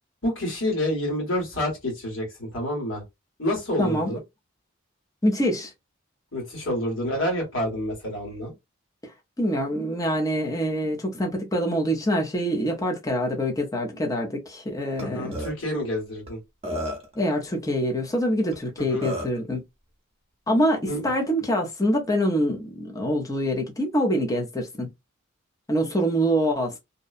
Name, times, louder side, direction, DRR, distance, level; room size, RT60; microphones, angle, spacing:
voice 1, 0.2-3.0 3.4-4.2 6.3-8.5 15.0-16.4 18.8-19.1 20.9-21.1, left 1 dB, 65° left, 1.5 m, -28 dB
voice 2, 3.8-4.2 5.2-5.7 9.4-15.4 17.1-19.6 20.5-24.9 25.7-26.8, equal, 15° left, 0.6 m, -25 dB
Burping eructation, 15.0-15.1 15.3-15.5 16.3-16.4 16.6-17.1 18.5-18.6 19.0-19.4, equal, 30° right, 0.8 m, -31 dB
2.7 x 2.2 x 2.4 m
head